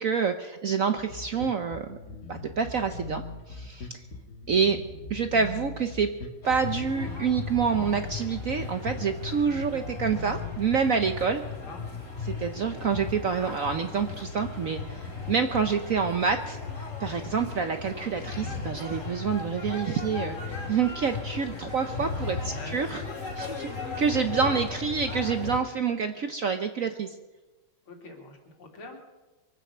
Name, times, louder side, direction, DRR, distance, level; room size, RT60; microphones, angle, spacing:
voice 1, 0.0-2.0 2.3-3.2 3.5-3.9 4.5-4.8 5.1-6.1 6.4-11.4 12.2-16.6 17.0-23.0 23.4-23.7 24.0-27.1, right 6 dB, 60° right, 7 dB, 0.9 m, -27 dB
Bass guitar, 1.0-10.6, left 3 dB, 55° left, 2.5 m, -41 dB
sound 1, 6.4-25.6, left 4 dB, 35° left, 3.3 m, -36 dB
voice 2, 22.3-23.0 24.4-24.8 27.9-29.0, left 2 dB, 85° left, 1 dB, 3.6 m, -44 dB
23.5 x 9.2 x 6.7 m, 1.2 s
omnidirectional pair, 2.3 m